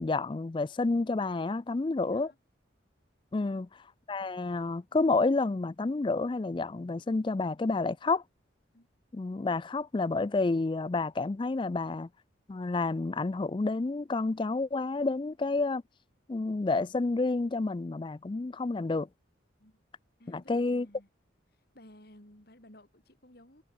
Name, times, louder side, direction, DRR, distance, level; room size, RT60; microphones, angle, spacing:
voice 1, 0.0-2.3 3.3-3.7 4.1-8.2 9.1-12.1 12.5-15.8 16.3-19.1 20.3-20.9, left 3 dB, 25° left, 0.4 m, -29 dB
voice 2, 2.0-2.4 3.3-3.6 8.7-8.9 19.6-19.8 20.2-21.1 21.5-23.6, left 1 dB, 55° left, 5.1 m, -56 dB
head